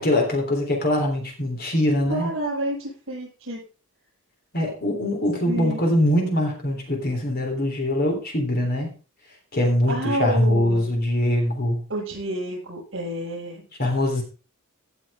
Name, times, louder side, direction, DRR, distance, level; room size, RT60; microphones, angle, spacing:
voice 1, 0.0-2.3 4.5-8.9 9.5-11.8 13.8-14.2, left 1 dB, 45° left, 1 dB, 3.4 m, -22 dB
voice 2, 2.1-3.6 5.4-6.0 9.9-11.0 11.9-13.6, right 1 dB, 65° right, -2 dB, 7.9 m, -29 dB
16.0 x 7.5 x 3.6 m, 0.36 s
head